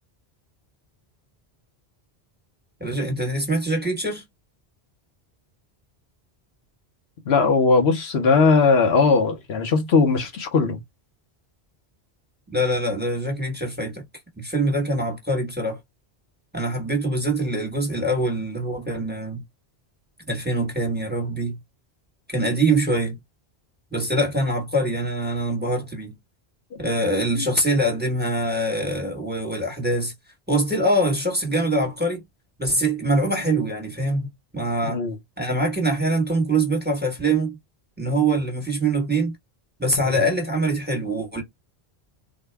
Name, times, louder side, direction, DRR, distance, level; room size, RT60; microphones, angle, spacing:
voice 1, 2.8-4.2 12.5-14.0 14.4-15.8 16.5-19.4 20.3-21.6 22.3-23.2 23.9-26.2 26.8-30.1 30.5-32.2 32.6-35.0 35.4-37.6 38.0-39.3 39.8-41.4, right 1 dB, 10° right, 1.2 m, -24 dB
voice 2, 7.3-10.8 26.7-26.8 27.3-27.5 34.9-35.2 40.0-40.2, left 4 dB, 75° left, 1.1 m, -19 dB
3.7 x 2.2 x 3.3 m
omnidirectional pair, 1.1 m